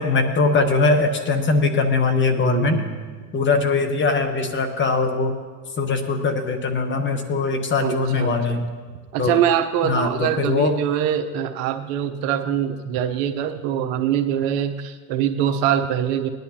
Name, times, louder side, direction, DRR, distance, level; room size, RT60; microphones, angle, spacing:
voice 1, 0.0-2.8 3.3-5.3 5.8-8.6 9.2-9.4 9.8-10.8, left 3 dB, 25° left, 7 dB, 1.0 m, -21 dB
voice 2, 2.4-3.2 7.8-8.7 9.1-16.3, right 9 dB, 55° right, 7 dB, 0.9 m, -24 dB
18.5 x 10.5 x 2.9 m, 1.5 s
hypercardioid pair, 105°, 48 cm